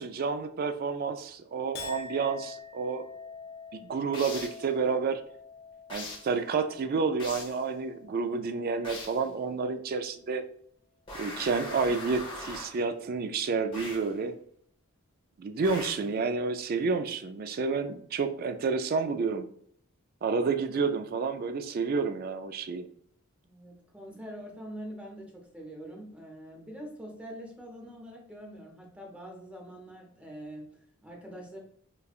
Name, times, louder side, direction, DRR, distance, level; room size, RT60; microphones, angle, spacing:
voice 1, 0.0-3.0 3.7-5.2 5.9-10.4 11.2-14.3 15.4-19.5 20.2-22.9, right 4 dB, 45° right, 9 dB, 0.3 m, -30 dB
Chink clink, 1.7-8.3 8.7-9.3, left 5 dB, 50° left, 0.6 m, -46 dB
sound 1, 4.1-4.7 5.9-6.3 7.2-7.6 8.8-9.3 11.1-12.8 13.7-14.1 15.6-16.1, left 2 dB, 25° left, 0.9 m, -41 dB
voice 2, 23.4-31.6, equal, 5° right, 0 dB, 0.7 m, -44 dB
5.1 x 2.3 x 2.4 m, 0.63 s
head